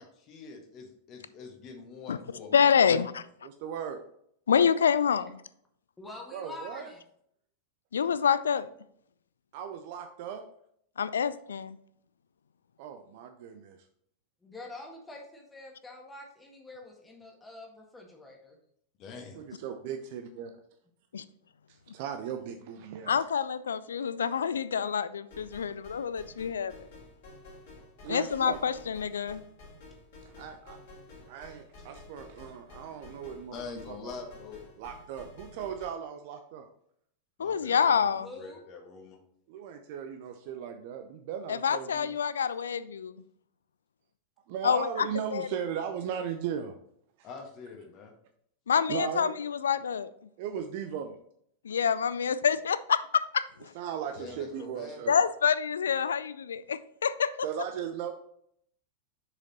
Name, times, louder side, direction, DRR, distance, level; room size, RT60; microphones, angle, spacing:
voice 1, 0.0-2.7 19.0-19.4 31.8-31.9 33.5-34.6 37.4-39.2 47.2-48.1 54.1-55.0, left 4 dB, 35° left, 4 dB, 1.4 m, -45 dB
voice 2, 2.5-3.2 4.5-5.4 7.9-8.7 11.0-11.8 23.1-26.7 28.1-29.4 37.4-38.3 41.5-43.1 44.6-45.1 45.3-45.5 48.7-50.1 51.6-53.7 55.1-57.3, left 7 dB, 70° left, 16 dB, 0.3 m, -27 dB
voice 3, 3.4-4.0 6.3-6.9 9.5-10.4 12.8-13.8 19.4-20.5 21.9-23.2 28.0-28.6 30.3-30.8 31.3-34.2 34.8-36.7 39.5-42.1 44.5-46.7 48.9-49.3 50.4-51.1 53.7-55.2 57.4-58.1, right 8 dB, 50° right, 7 dB, 0.5 m, -37 dB
voice 4, 6.0-7.0 14.4-18.6 38.1-38.6, left 2 dB, 10° left, 1 dB, 1.6 m, -46 dB
sound 1, 25.3-35.9, left 2 dB, 50° left, 2.5 m, -51 dB
6.4 x 5.1 x 4.1 m, 0.69 s
figure-of-eight pair, 90°, 0 cm